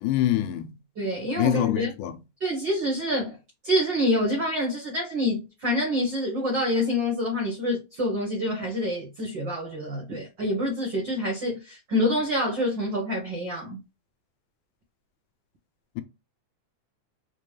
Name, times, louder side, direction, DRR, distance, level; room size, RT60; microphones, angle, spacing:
voice 1, 0.0-0.7 1.4-2.1, left 12 dB, 85° left, 2.1 m, -25 dB
voice 2, 1.0-1.9 2.4-3.4 3.6-13.8, left 1 dB, 70° right, 1.0 m, -27 dB
5.1 x 2.2 x 3.2 m
omnidirectional pair, 3.5 m